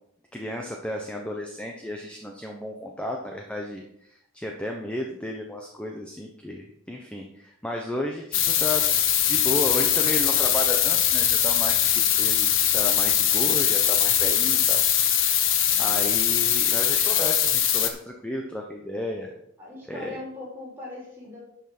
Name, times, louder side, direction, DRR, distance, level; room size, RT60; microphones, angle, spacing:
voice 1, 0.3-15.5 15.8-19.3 19.9-20.2, left 1 dB, 5° left, 1 dB, 0.9 m, -33 dB
sound 1, 8.3-17.9, left 10 dB, 75° left, 1.2 m, -22 dB
voice 2, 15.7-16.0 19.6-21.4, left 2 dB, 10° right, -5 dB, 5.1 m, -40 dB
11.5 x 5.8 x 6.0 m, 0.77 s
head